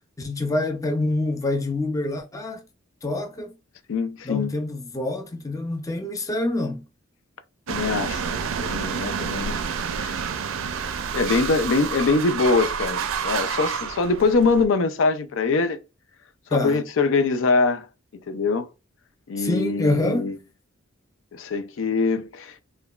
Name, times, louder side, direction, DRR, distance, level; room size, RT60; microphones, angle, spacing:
voice 1, 0.2-2.6 3.0-3.5 4.2-6.8 16.5-16.8 19.4-20.3, left 2 dB, 15° left, 0.4 m, -26 dB
voice 2, 3.9-4.6 7.7-9.6 10.0-10.1 11.1-15.8 16.5-17.9 18.3-18.7 19.3-20.4 21.3-22.6, left 4 dB, 70° left, 0.4 m, -23 dB
sound 1, 7.7-14.6, right 6 dB, 75° right, 0.4 m, -29 dB
4.8 x 2.2 x 2.3 m
head